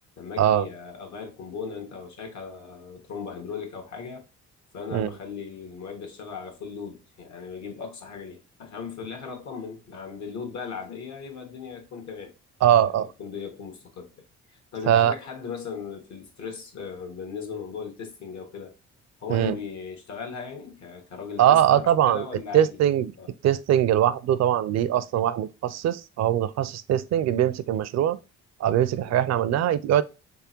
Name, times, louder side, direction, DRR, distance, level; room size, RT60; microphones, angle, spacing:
voice 1, 0.2-4.2 4.7-12.3 12.8-14.1 14.5-18.7 19.2-22.8 23.1-23.3 29.0-29.2, left 6 dB, 65° left, 1.5 m, -37 dB
voice 2, 12.6-13.1 14.9-15.1 19.3-19.6 21.4-22.3 22.5-23.1 23.4-28.2 28.6-30.0, right 11 dB, 60° right, 0.5 m, -21 dB
3.6 x 3.3 x 4.4 m
cardioid pair, 90°, 30 cm